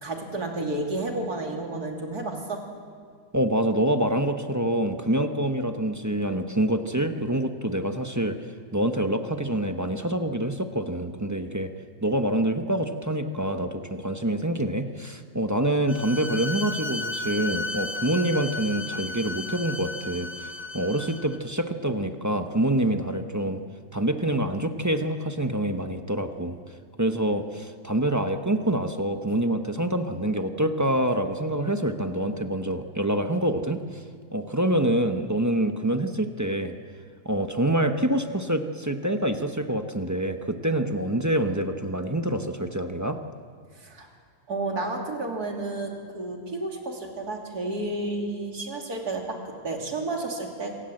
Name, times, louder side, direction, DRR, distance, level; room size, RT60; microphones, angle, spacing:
voice 1, 0.0-2.6 43.7-44.1 44.5-50.7, right 2 dB, 80° right, 1 dB, 3.4 m, -31 dB
voice 2, 3.3-8.4 8.7-11.7 12.0-23.6 23.9-26.6 27.0-33.8 34.3-36.7 37.2-43.2, right 1 dB, 15° right, 7 dB, 0.8 m, -26 dB
Bowed string instrument, 15.9-21.4, left 2 dB, 35° left, 0.8 m, -34 dB
26.5 x 18.0 x 7.8 m, 2.1 s
omnidirectional pair, 1.6 m